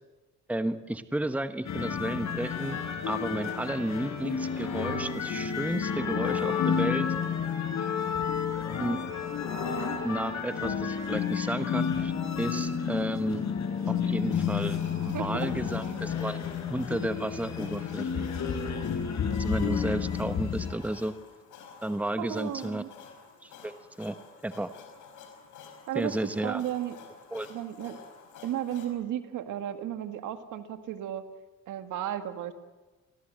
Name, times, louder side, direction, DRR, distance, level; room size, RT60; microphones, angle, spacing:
voice 1, 0.5-2.8 3.1-7.1 8.8-9.0 10.0-13.4 13.9-14.8 15.0-16.4 16.7-18.4 19.4-21.1 21.8-22.8 23.4-24.1 24.4-24.7 25.9-26.6 27.3-27.5, right 1 dB, 5° right, 10 dB, 1.2 m, -32 dB
sound 1, 1.6-20.7, left 7 dB, 65° left, 5.3 m, -31 dB
sound 2, 14.1-28.9, left 6 dB, 85° left, 5.0 m, -51 dB
voice 2, 15.1-15.5 22.2-22.9 25.9-26.2 26.4-27.0 27.5-28.0 28.4-31.3 31.7-32.5, right 11 dB, 85° right, 9 dB, 2.0 m, -34 dB
29.5 x 19.0 x 7.7 m, 1.2 s
cardioid pair, 90°, 30 cm